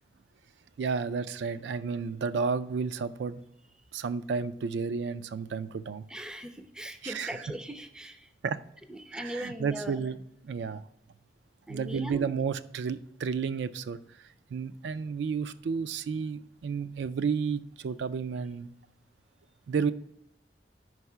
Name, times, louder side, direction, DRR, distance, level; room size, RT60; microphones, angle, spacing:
voice 1, 0.8-3.4 3.9-6.0 7.0-7.4 8.4-8.6 9.1-10.2 10.4-10.8 11.7-14.0 14.5-18.7 19.7-19.9, right 5 dB, 85° right, 13 dB, 0.3 m, -32 dB
voice 2, 6.1-8.2 8.9-10.0 11.7-12.3, equal, 5° right, 8 dB, 0.4 m, -39 dB
5.4 x 4.7 x 5.5 m, 0.78 s
head